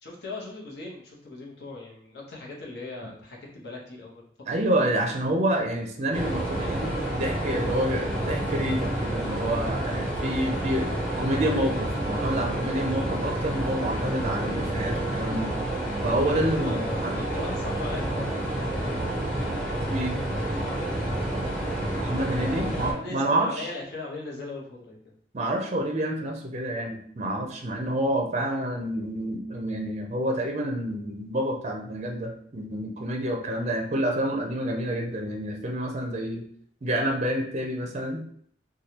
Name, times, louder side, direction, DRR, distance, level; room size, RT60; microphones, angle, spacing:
voice 1, 0.0-4.2 16.2-19.1 20.2-21.3 22.3-22.5 22.9-25.1, left 3 dB, 60° left, -3 dB, 0.9 m, -39 dB
voice 2, 4.5-15.5 16.0-17.3 19.9-20.2 22.0-23.7 25.3-36.4 36.8-38.3, right 1 dB, 35° right, 1 dB, 0.5 m, -28 dB
sound 1, 6.1-22.9, right 1 dB, 5° left, 0.7 m, -29 dB
3.3 x 2.3 x 2.8 m, 0.64 s
head